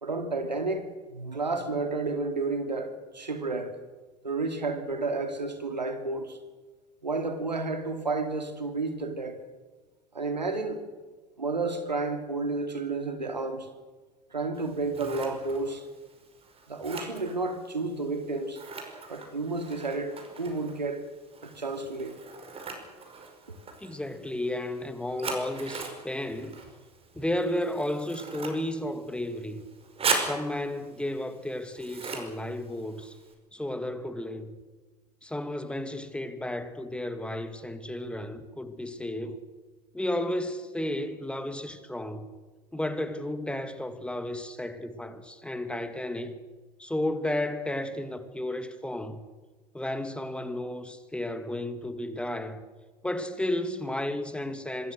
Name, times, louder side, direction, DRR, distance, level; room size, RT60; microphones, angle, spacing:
voice 1, 0.0-3.7 4.2-6.4 7.0-9.4 10.1-10.8 11.4-13.7 14.3-15.9 16.7-18.6 19.1-21.1 21.4-22.2 23.5-23.6, right 3 dB, 85° right, 2.4 m, -31 dB
Scissors, 14.5-33.3, right 4 dB, 25° right, 5.5 m, -39 dB
voice 2, 23.8-26.6 27.1-29.6 30.1-33.2 33.5-34.6 35.2-39.4 39.9-42.3 42.7-46.4 46.8-49.3 49.7-52.6 53.0-54.9, left 1 dB, 5° left, 2.1 m, -33 dB
26.0 x 20.5 x 6.5 m
figure-of-eight pair, 80°, 21 cm